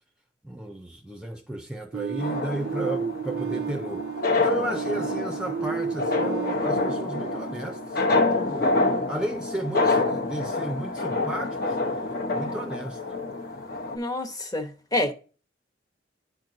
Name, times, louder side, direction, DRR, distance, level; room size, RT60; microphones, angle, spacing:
voice 1, 0.4-8.8 9.1-11.8 12.3-13.0, right 1 dB, 5° right, 0.5 m, -33 dB
sound 1, 1.9-8.7, right 7 dB, 60° right, 0.3 m, -33 dB
sound 2, 2.2-14.0, left 3 dB, 60° left, 1.0 m, -27 dB
voice 2, 13.9-15.1, left 1 dB, 20° left, 0.9 m, -28 dB
11.0 x 4.4 x 2.7 m
head